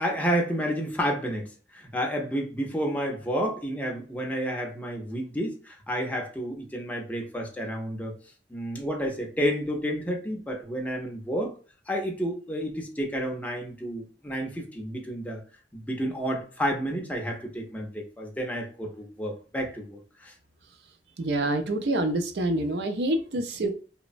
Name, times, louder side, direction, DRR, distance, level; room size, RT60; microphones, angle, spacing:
voice 1, 0.0-8.2 8.5-11.5 11.9-15.4 15.7-20.3, equal, 10° left, 0.5 m, -30 dB
voice 2, 21.2-23.7, right 1 dB, 70° right, 0.5 m, -26 dB
3.0 x 2.1 x 2.5 m
head